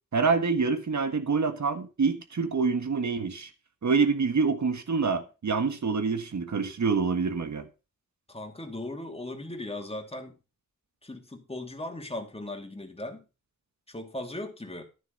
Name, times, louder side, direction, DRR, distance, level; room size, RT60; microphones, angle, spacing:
voice 1, 0.1-3.5 3.8-7.7, right 4 dB, 60° right, 1.6 m, -26 dB
voice 2, 8.3-10.4 11.0-13.2 13.9-14.8, left 1 dB, 20° left, 2.7 m, -38 dB
13.5 x 6.8 x 5.3 m
wide cardioid pair, 100°, 32 cm